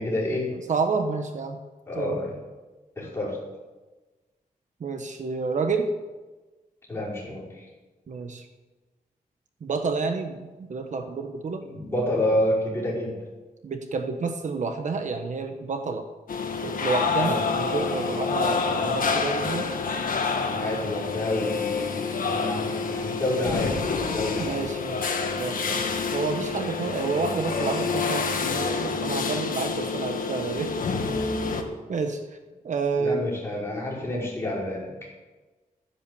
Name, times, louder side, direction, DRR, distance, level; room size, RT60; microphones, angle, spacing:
voice 1, 0.0-0.5 1.9-2.3 3.0-3.4 6.9-7.6 11.6-13.2 17.1-17.4 20.5-23.8 24.1-24.7 33.0-34.9, left 1 dB, 15° left, -6 dB, 5.6 m, -29 dB
voice 2, 0.7-1.6 1.9-2.2 4.8-5.9 8.1-8.5 9.6-11.6 13.6-16.0 16.6-19.7 24.4-25.8 26.1-30.7 31.5-31.6 31.9-32.2 32.6-33.2, right 4 dB, 55° right, 6 dB, 1.1 m, -29 dB
sound 1, 16.3-31.6, left 4 dB, 70° left, 1.7 m, -28 dB
14.0 x 10.0 x 7.1 m, 1.2 s
wide cardioid pair, 165°, 15 cm